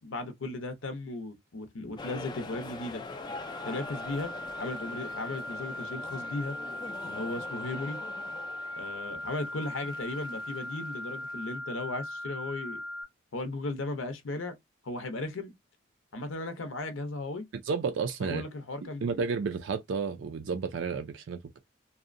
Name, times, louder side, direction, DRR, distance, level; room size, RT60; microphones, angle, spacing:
voice 1, 0.0-3.0 3.7-4.3 4.6-6.6 7.0-8.0 8.8-12.8 13.3-14.6 14.8-15.5 16.1-17.5 18.2-19.1, left 2 dB, 85° left, 0.6 m, -36 dB
sound 1, 2.0-11.6, left 3 dB, 20° left, 0.3 m, -44 dB
sound 2, 3.1-13.0, left 1 dB, 5° left, 0.8 m, -39 dB
voice 2, 17.7-18.4 19.0-21.6, right 5 dB, 75° right, 0.4 m, -31 dB
2.7 x 2.1 x 2.5 m
head